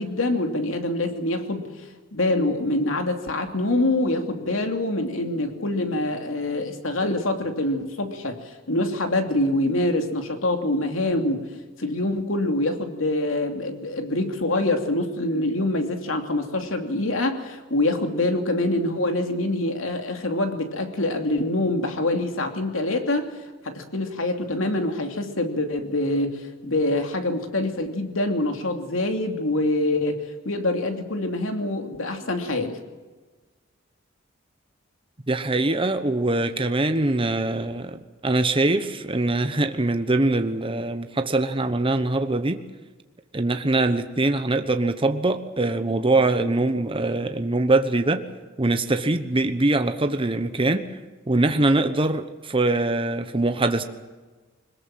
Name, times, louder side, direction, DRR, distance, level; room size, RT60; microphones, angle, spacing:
voice 1, 0.0-11.5 11.8-23.3 23.6-32.8, left 2 dB, 85° left, 5 dB, 2.8 m, -25 dB
voice 2, 35.3-42.6 43.3-48.2 48.6-50.8 51.3-53.8, right 2 dB, 25° right, 8 dB, 1.1 m, -23 dB
22.0 x 20.5 x 7.6 m, 1.3 s
head